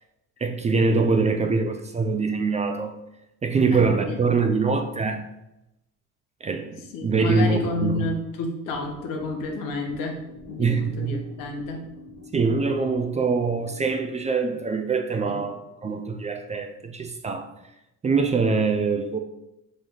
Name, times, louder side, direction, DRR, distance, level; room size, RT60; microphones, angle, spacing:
voice 1, 0.4-2.9 3.4-5.2 6.4-6.7 7.0-8.1 10.6-11.2 12.3-17.5 18.0-19.2, right 4 dB, 20° right, 5 dB, 0.3 m, -24 dB
voice 2, 3.7-4.2 6.9-10.2 10.5-11.8 15.2-15.4, left 2 dB, 85° left, 2 dB, 1.0 m, -30 dB
sound 1, 8.7-15.2, left 2 dB, 45° left, 1.4 m, -46 dB
4.2 x 3.2 x 3.6 m, 0.88 s
cardioid pair, 115°, 32 cm